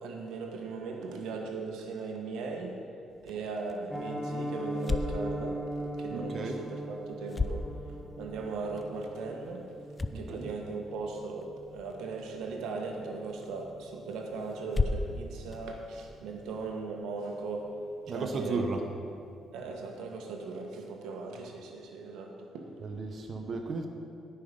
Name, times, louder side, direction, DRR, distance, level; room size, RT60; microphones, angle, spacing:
voice 1, 0.0-2.8 3.2-5.7 6.0-9.7 10.1-17.7 18.1-18.6 19.5-22.7, right 4 dB, 90° right, 2 dB, 1.2 m, -38 dB
sound 1, 3.1-16.7, left 3 dB, 25° left, 0.5 m, -39 dB
Piano, 3.9-14.8 15.1-15.3 15.6-15.7 16.1-16.3 16.7-16.8, equal, 5° left, 1.4 m, -40 dB
voice 2, 6.1-6.6 10.1-10.5 18.1-18.8 22.8-23.9, right 3 dB, 50° right, 3 dB, 0.9 m, -34 dB
16.5 x 5.7 x 5.1 m, 2.5 s
cardioid pair, 90°, 0 cm